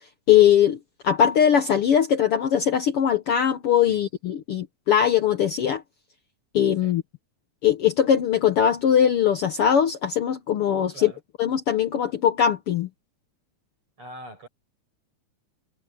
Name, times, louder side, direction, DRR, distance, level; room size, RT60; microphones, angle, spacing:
voice 1, 0.3-0.8 1.0-5.8 6.5-7.0 7.6-11.1 11.4-12.9, left 9 dB, 60° left, 1.7 m, -20 dB
voice 2, 10.9-11.2 14.0-14.5, right 1 dB, 45° right, 8.4 m, -42 dB
omnidirectional pair, 3.4 m